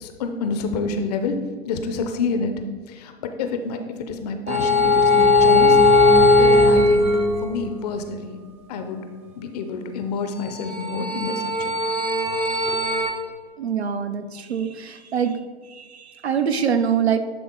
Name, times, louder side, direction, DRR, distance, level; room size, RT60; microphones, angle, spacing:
voice 1, 0.0-1.4 1.6-2.5 2.9-3.8 4.1-5.8 6.1-7.1 7.4-8.4 8.7-9.0 9.4-11.7, left 4 dB, 35° left, 7 dB, 0.7 m, -28 dB
sound 1, 4.5-7.7 10.5-13.1, left 2 dB, 20° right, 0.9 m, -17 dB
voice 2, 13.6-15.4 15.7-17.2, right 7 dB, 70° right, 8 dB, 0.8 m, -24 dB
10.5 x 3.6 x 3.7 m, 1.5 s
figure-of-eight pair, 110°, 33 cm